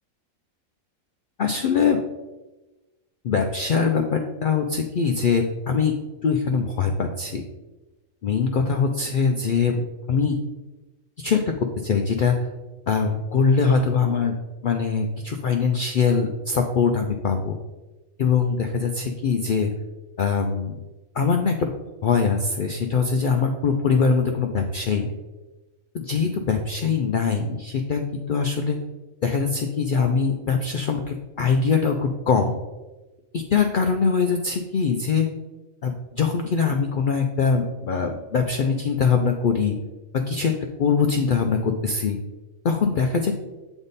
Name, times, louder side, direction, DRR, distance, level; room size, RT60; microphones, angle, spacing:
voice 1, 1.4-2.0 3.2-5.9 6.2-7.4 8.2-9.8 10.1-10.4 11.2-11.4 11.8-12.5 12.9-14.3 14.6-17.6 18.2-19.7 20.2-20.8 21.1-21.7 22.0-25.1 25.9-28.8 29.2-32.6 33.3-35.3 35.8-39.7 40.3-40.5 40.8-42.2 42.6-43.3, left 5 dB, 90° left, 4 dB, 0.4 m, -22 dB
7.9 x 3.6 x 4.0 m, 1.1 s
omnidirectional pair, 1.4 m